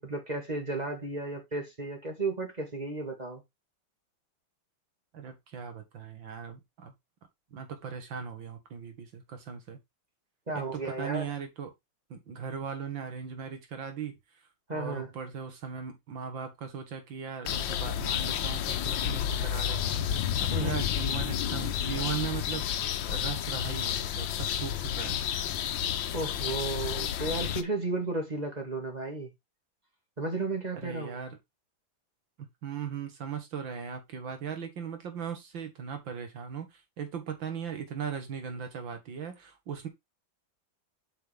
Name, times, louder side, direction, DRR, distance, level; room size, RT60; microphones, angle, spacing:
voice 1, 0.0-3.4 10.5-11.2 14.7-15.1 20.5-20.8 26.1-29.3 30.2-31.2, right 2 dB, 20° right, 2.3 m, -33 dB
voice 2, 5.1-6.9 7.5-9.8 10.5-11.7 12.1-14.2 14.7-25.2 30.7-31.4 32.4-39.9, right 7 dB, 75° right, 2.5 m, -38 dB
sound 1, 17.5-27.6, left 10 dB, 80° left, 1.5 m, -31 dB
7.8 x 5.6 x 3.5 m
omnidirectional pair, 2.1 m